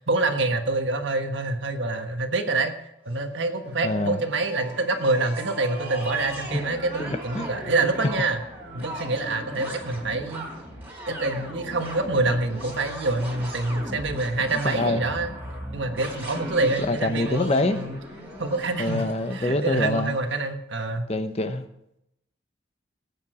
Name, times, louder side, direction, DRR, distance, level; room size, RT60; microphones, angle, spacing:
voice 1, 0.1-2.7 3.0-8.4 8.7-10.4 11.1-15.3 15.7-18.0 18.4-19.1 19.3-21.1, right 2 dB, 75° right, 6 dB, 1.4 m, -26 dB
sound 1, 3.1-20.2, equal, 10° right, 4.1 m, -38 dB
voice 2, 3.8-4.2 7.0-7.1 7.3-7.5 14.5-15.0 16.9-17.8 18.8-20.1 21.1-21.6, left 2 dB, 35° left, 9 dB, 0.8 m, -25 dB
18.5 x 8.6 x 4.9 m, 0.83 s
head